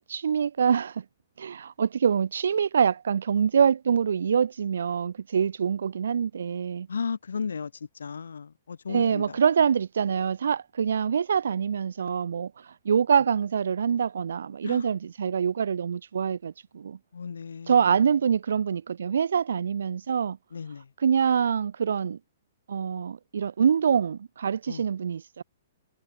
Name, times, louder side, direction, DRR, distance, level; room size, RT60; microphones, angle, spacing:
voice 1, 0.1-1.0 1.4-6.9 8.9-12.5 12.8-17.0 17.7-20.4 21.0-22.2 22.7-25.4, right 7 dB, 70° right, 0.4 m, -25 dB
voice 2, 6.9-9.4 14.6-14.9 17.1-17.9 20.5-20.9 24.7-24.8, left 6 dB, 75° left, 3.4 m, -35 dB
figure-of-eight pair, 120°, 0 cm